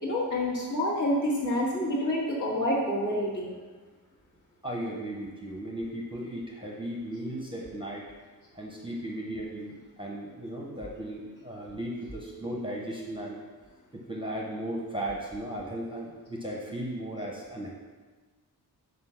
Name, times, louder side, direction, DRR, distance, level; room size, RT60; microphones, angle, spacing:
voice 1, 0.0-3.5, left 1 dB, 50° left, -5 dB, 2.1 m, -28 dB
voice 2, 4.6-8.1 8.5-13.4 13.9-17.7, right 1 dB, 15° right, -2 dB, 0.9 m, -36 dB
6.0 x 5.3 x 5.8 m, 1.4 s
wide cardioid pair, 170°, 38 cm